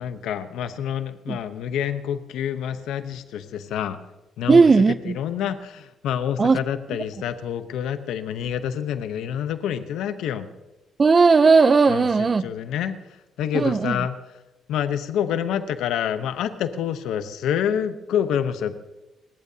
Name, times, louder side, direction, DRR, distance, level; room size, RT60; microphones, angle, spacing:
voice 1, 0.0-4.0 4.4-4.7 5.0-10.5 11.9-13.0 13.4-14.1 14.7-18.7, left 9 dB, 85° left, 11 dB, 0.9 m, -27 dB
voice 2, 4.5-5.2 6.4-6.6 11.0-12.4 13.5-14.0, right 4 dB, 35° right, 17 dB, 0.6 m, -16 dB
30.0 x 12.0 x 2.8 m, 1.1 s
cardioid pair, 90°, 0 cm